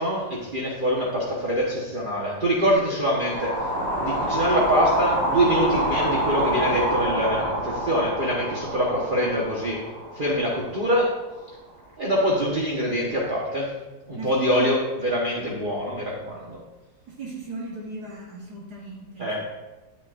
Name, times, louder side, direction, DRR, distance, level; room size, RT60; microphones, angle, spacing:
voice 1, 0.0-3.5 4.0-9.8 10.1-11.1 12.0-13.7 14.1-16.6 19.2-19.4, equal, 30° right, -4 dB, 1.3 m, -24 dB
sound 1, 3.0-11.2, right 1 dB, 45° right, 2.0 m, -27 dB
voice 2, 14.1-14.8 17.1-19.4, right 4 dB, 65° right, -2 dB, 1.7 m, -36 dB
10.0 x 9.5 x 2.6 m, 1.1 s
omnidirectional pair, 1.9 m